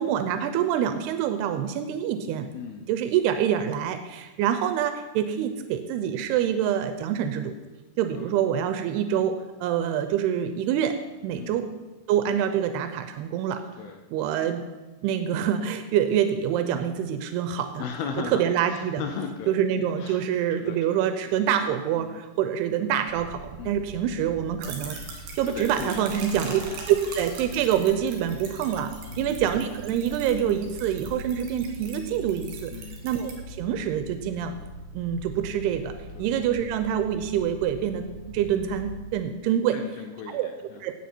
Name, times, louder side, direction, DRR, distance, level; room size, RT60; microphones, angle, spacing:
voice 1, 0.0-2.5 2.9-7.5 8.0-9.4 9.6-11.0 11.2-11.7 12.1-13.6 14.1-14.6 15.0-17.8 18.3-19.0 19.5-25.0 25.4-26.6 26.9-32.7 33.0-34.5 34.9-35.9 36.2-39.8 40.3-40.5 40.8-40.9, right 9 dB, 90° right, 8 dB, 2.7 m, -26 dB
voice 2, 2.5-2.9 8.1-8.3 11.4-11.6 13.8-14.0 17.8-18.4 18.7-19.5 20.0-20.2 20.6-20.8 22.0-22.5 23.6-23.7 25.5-26.2 26.5-26.7 29.1-29.4 31.2-31.3 32.7-33.0 36.2-36.3 39.7-40.8, left 6 dB, 80° left, 4 dB, 2.6 m, -37 dB
sound 1, 23.1-39.0, equal, 20° left, 0.8 m, -42 dB
sound 2, 24.6-33.3, right 4 dB, 70° right, 3.9 m, -42 dB
16.5 x 7.6 x 4.4 m, 1.2 s
omnidirectional pair, 4.6 m